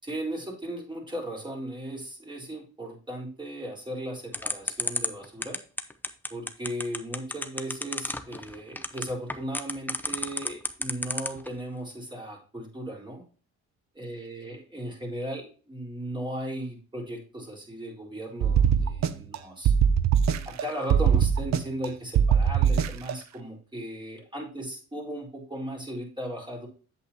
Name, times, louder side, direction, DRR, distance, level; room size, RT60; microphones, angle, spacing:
voice 1, 0.0-5.6 6.3-13.2 13.9-19.7 20.4-26.7, right 1 dB, 15° right, -2 dB, 4.3 m, -36 dB
sound 1, 4.3-11.5, left 1 dB, 5° left, 0.8 m, -30 dB
sound 2, 18.4-19.4 19.7-20.6 20.9-21.9 22.2-23.1, right 8 dB, 65° right, 0.7 m, -21 dB
8.2 x 8.2 x 2.8 m, 0.38 s
cardioid pair, 90°, 30 cm